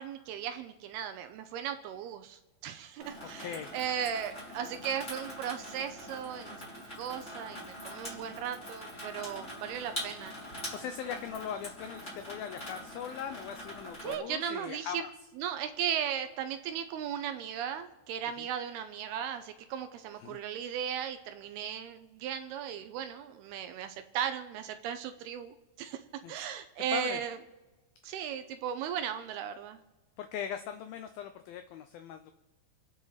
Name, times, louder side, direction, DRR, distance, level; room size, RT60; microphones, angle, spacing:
voice 1, 0.0-6.7 7.0-10.4 14.0-15.0 15.4-27.4 28.0-29.8, right 9 dB, 75° right, 8 dB, 2.4 m, -36 dB
Water tap faucet / Sink (filling or washing), 3.0-14.1, equal, 15° left, 3.8 m, -44 dB
voice 2, 3.2-3.8 10.7-15.1 18.4-18.5 20.2-20.4 26.2-26.4 26.9-27.2 28.0-28.1 30.2-32.3, left 9 dB, 90° left, 9 dB, 2.0 m, -40 dB
29.0 x 9.8 x 4.1 m, 1.2 s
omnidirectional pair, 5.0 m